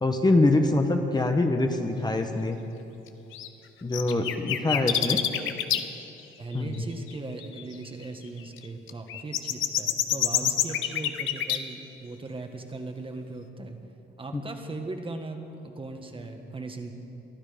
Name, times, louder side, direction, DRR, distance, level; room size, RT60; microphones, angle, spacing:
voice 1, 0.0-2.6 3.8-5.2 6.5-6.8 10.4-10.5 14.3-14.4, left 2 dB, 20° left, 4 dB, 1.2 m, -24 dB
sound 1, 3.3-3.5 3.9-5.8 6.2-6.3 6.7-6.8 7.1-7.2 7.4-7.6 8.6-11.6, left 11 dB, 85° left, 0.9 m, -26 dB
voice 2, 5.2-5.5 6.4-13.8 14.2-16.9, right 3 dB, 25° right, 4 dB, 1.6 m, -39 dB
22.5 x 12.0 x 5.2 m, 2.9 s
cardioid pair, 90°, 20 cm